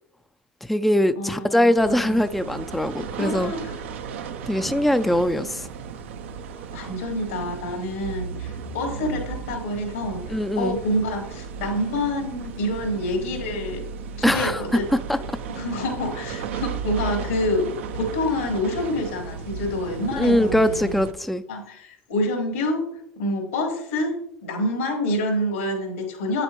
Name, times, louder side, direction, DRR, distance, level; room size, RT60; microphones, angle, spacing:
voice 1, 0.6-3.5 4.5-5.7 10.3-10.8 14.2-14.6 15.1-15.2 20.2-21.4, left 1 dB, ahead, 10 dB, 0.4 m, -22 dB
voice 2, 1.2-2.2 3.2-3.8 6.7-13.8 14.2-14.8 15.1-15.2 15.5-21.0 21.5-26.4, left 1 dB, 85° left, 0 dB, 3.4 m, -27 dB
sound 1, 1.8-21.1, right 6 dB, 80° right, 0.7 m, -35 dB
8.7 x 7.7 x 3.0 m, 0.71 s
hypercardioid pair, 80°, 7 cm